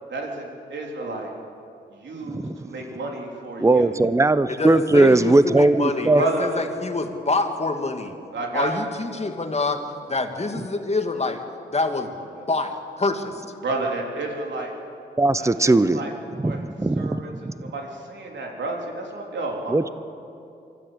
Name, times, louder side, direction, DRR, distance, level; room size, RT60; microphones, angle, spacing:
voice 1, 0.1-1.3 1.9-4.0 6.1-6.5 8.3-8.7 12.3-12.5 13.6-14.7 15.4-16.1 16.4-16.6 17.0-17.3 17.6-19.9, right 2 dB, 70° right, 0 dB, 3.7 m, -31 dB
voice 2, 2.3-2.6 3.6-6.2 15.2-16.0 16.3-17.5 19.7-19.9, right 2 dB, 15° right, 14 dB, 0.8 m, -19 dB
voice 3, 4.5-8.1 8.5-9.8 10.1-11.4 11.7-12.1 12.5-12.7 13.0-13.4, left 3 dB, 35° left, 6 dB, 2.3 m, -26 dB
24.0 x 14.0 x 8.2 m, 2.6 s
supercardioid pair, 50°, 19 cm